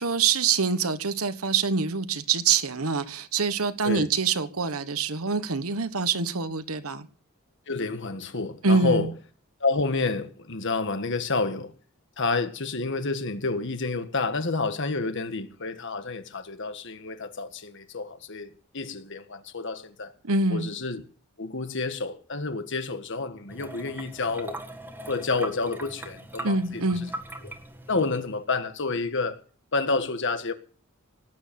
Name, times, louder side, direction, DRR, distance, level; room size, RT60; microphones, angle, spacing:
voice 1, 0.0-7.1 8.6-9.1 20.2-20.7 26.4-27.1, right 4 dB, 90° right, 1.3 m, -25 dB
voice 2, 7.7-9.1 9.6-11.7 12.2-20.1 20.5-21.0 21.4-24.6 25.1-26.8 27.4-27.5 27.9-29.4 29.7-30.5, left 3 dB, 60° left, 1.7 m, -29 dB
sound 1, 23.5-28.5, right 1 dB, 10° right, 1.8 m, -40 dB
18.5 x 9.1 x 7.0 m
head